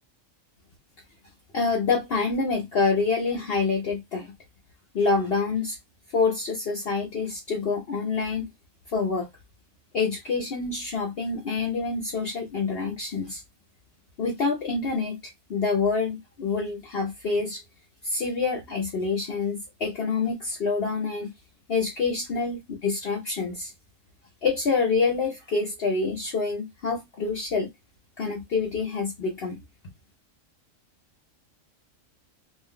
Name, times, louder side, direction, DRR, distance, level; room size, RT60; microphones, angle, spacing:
voice 1, 1.5-4.3 4.9-5.8 6.1-8.5 8.9-9.3 9.9-13.4 14.2-15.2 15.5-17.6 18.0-21.3 21.7-22.6 22.8-23.7 24.4-27.7 28.2-29.6, left 4 dB, 55° left, 0.8 m, -26 dB
2.6 x 2.2 x 3.5 m
omnidirectional pair, 1.3 m